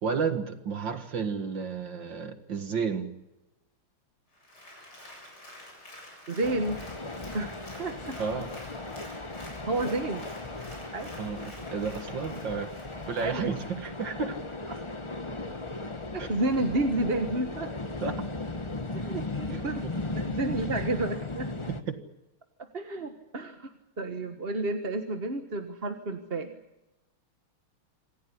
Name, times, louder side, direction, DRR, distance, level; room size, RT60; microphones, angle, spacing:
voice 1, 0.0-3.1 8.2-8.5 11.2-12.7 13.1-14.4 16.2-16.3 18.0-18.2 19.5-19.9 21.7-22.0, right 5 dB, 60° right, 8 dB, 2.3 m, -32 dB
Applause, 4.3-14.1 14.5-14.6, left 1 dB, 50° left, 8.4 m, -49 dB
voice 2, 6.3-6.8 7.3-8.2 9.1-9.3 9.7-10.2 10.9-11.1 13.2-13.5 14.7-14.8 16.1-17.7 18.9-19.8 20.1-21.5 22.7-23.7 24.0-26.5, right 2 dB, 30° right, 6 dB, 1.5 m, -31 dB
sound 1, 6.4-21.8, left 2 dB, 20° left, 0.9 m, -37 dB
27.0 x 16.0 x 10.0 m, 0.97 s
omnidirectional pair, 2.3 m